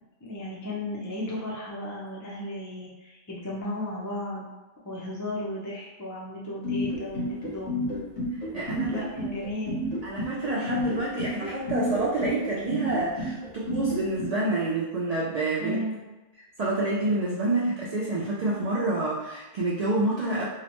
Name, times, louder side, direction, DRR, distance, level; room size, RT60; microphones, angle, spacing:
voice 1, 0.2-4.5 4.8-7.7 8.8-9.8 15.6-16.0, left 1 dB, 30° left, -6 dB, 0.3 m, -35 dB
sound 1, 6.6-14.3, left 1 dB, 80° left, 1.2 m, -30 dB
voice 2, 8.5-9.0 10.0-15.8 16.6-20.4, right 2 dB, 70° right, -6 dB, 0.3 m, -28 dB
2.8 x 2.1 x 2.9 m, 1.1 s
omnidirectional pair, 1.2 m